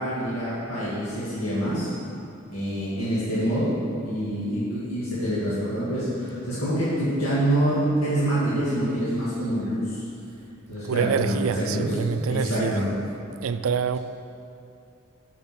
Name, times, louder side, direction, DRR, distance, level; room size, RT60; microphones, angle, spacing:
voice 1, 0.0-1.9 2.5-3.8 4.0-10.0 10.7-11.9 12.3-12.9, right 1 dB, 90° left, 1.8 m, -26 dB
voice 2, 10.7-12.8 13.4-14.0, right 6 dB, 85° right, 0.4 m, -26 dB
7.2 x 5.9 x 5.9 m
head